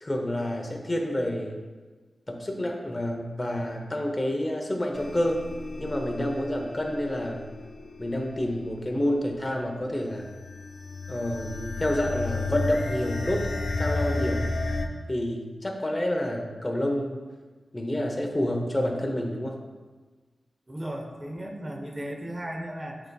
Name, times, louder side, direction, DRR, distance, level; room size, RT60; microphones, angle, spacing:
voice 1, 0.0-1.6 2.3-5.4 5.8-7.4 8.0-10.3 11.1-13.5 13.8-14.4 15.1-17.2 17.7-19.6, left 1 dB, 25° left, 2 dB, 0.9 m, -28 dB
sound 1, 4.9-14.9, left 3 dB, 75° left, 0.5 m, -33 dB
voice 2, 20.7-23.0, right 1 dB, 25° right, 2 dB, 0.7 m, -35 dB
10.5 x 4.0 x 2.3 m, 1.4 s
wide cardioid pair, 75°, 0 cm